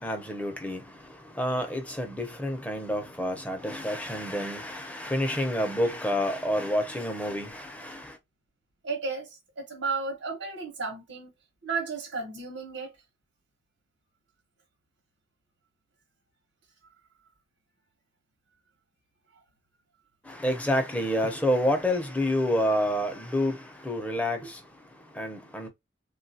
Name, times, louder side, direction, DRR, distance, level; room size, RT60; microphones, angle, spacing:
voice 1, 0.0-0.8 1.3-8.1 20.3-24.6 25.1-25.7, equal, 5° left, 0.6 m, -28 dB
voice 2, 8.8-11.3 11.6-12.9, right 4 dB, 85° right, 0.9 m, -33 dB
3.5 x 2.3 x 2.6 m
head